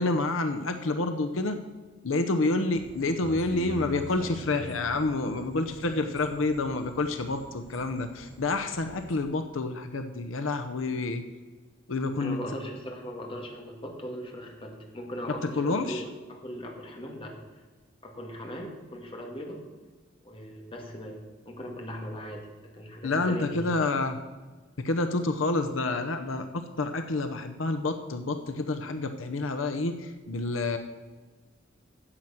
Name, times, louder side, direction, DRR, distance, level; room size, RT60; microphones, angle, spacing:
voice 1, 0.0-1.6 2.0-11.2 11.9-12.4 15.6-16.0 23.0-24.2 24.8-30.8, left 2 dB, 85° left, 7 dB, 0.8 m, -28 dB
sound 1, 2.7-9.2, right 1 dB, ahead, 2.9 m, -44 dB
voice 2, 12.2-17.3 18.0-19.6 20.2-21.2 21.5-22.5 22.7-23.7, equal, 30° left, 1 dB, 2.1 m, -39 dB
10.0 x 7.9 x 7.5 m, 1.3 s
head